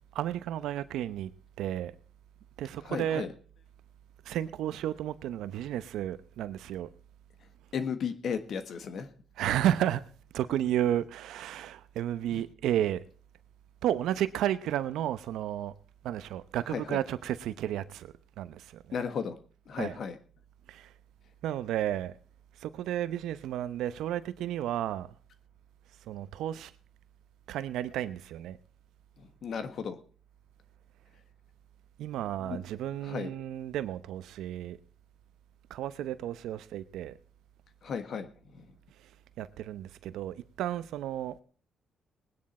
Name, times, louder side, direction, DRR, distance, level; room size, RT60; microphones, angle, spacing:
voice 1, 0.1-1.3 1.6-1.9 2.6-3.3 4.2-6.9 9.4-10.0 10.3-13.0 13.8-15.7 16.0-19.0 19.7-20.0 20.7-20.9 21.4-22.1 22.6-25.1 26.1-26.7 27.5-28.6 32.0-34.8 35.7-37.1 39.4-41.4, right 11 dB, 85° right, 0.8 m, -32 dB
voice 2, 2.8-3.3 7.7-9.1 12.3-12.4 16.7-17.0 18.9-19.4 19.7-20.2 29.2-30.0 32.4-32.6 33.0-33.3 37.8-38.7, left 6 dB, 60° left, 1.4 m, -35 dB
20.0 x 9.7 x 4.3 m
cardioid pair, 90°, 0 cm